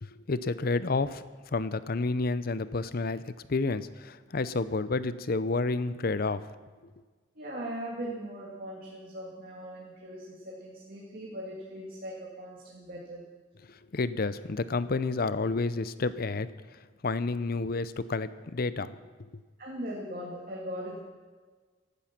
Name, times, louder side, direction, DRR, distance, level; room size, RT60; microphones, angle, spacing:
voice 1, 0.0-3.2 3.5-6.5 13.9-16.5 17.0-19.0, left 3 dB, 50° left, 15 dB, 0.6 m, -30 dB
voice 2, 7.4-13.2 19.6-21.0, equal, 50° right, -3 dB, 2.3 m, -39 dB
16.0 x 12.5 x 5.9 m, 1.4 s
head